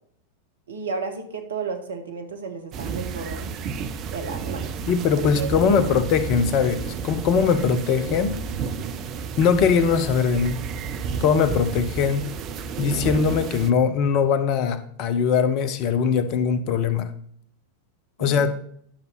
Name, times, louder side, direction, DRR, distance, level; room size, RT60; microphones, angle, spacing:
voice 1, 0.7-3.6 4.1-4.7 5.2-6.0 18.2-18.5, right 4 dB, 70° right, 5 dB, 1.4 m, -33 dB
sound 1, 2.7-13.7, right 6 dB, 35° right, 0.7 m, -31 dB
voice 2, 4.9-8.4 9.4-10.6 11.2-12.3 12.8-17.1 18.2-18.5, left 6 dB, 40° left, 11 dB, 0.9 m, -21 dB
10.0 x 6.8 x 4.1 m, 0.63 s
figure-of-eight pair, 90°, 0 cm